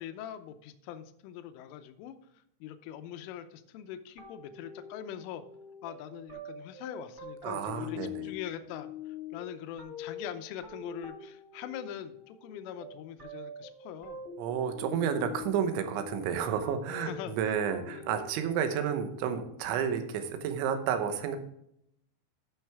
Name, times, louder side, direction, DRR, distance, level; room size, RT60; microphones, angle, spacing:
voice 1, 0.0-5.4 5.8-14.2 17.0-17.4 17.8-18.1, left 10 dB, 85° left, 9 dB, 3.2 m, -43 dB
sound 1, 4.2-19.5, left 5 dB, 30° right, 2.1 m, -45 dB
voice 2, 7.4-8.3 14.4-21.4, right 8 dB, 75° right, 7 dB, 3.2 m, -31 dB
13.5 x 6.3 x 3.5 m, 0.75 s
omnidirectional pair, 5.7 m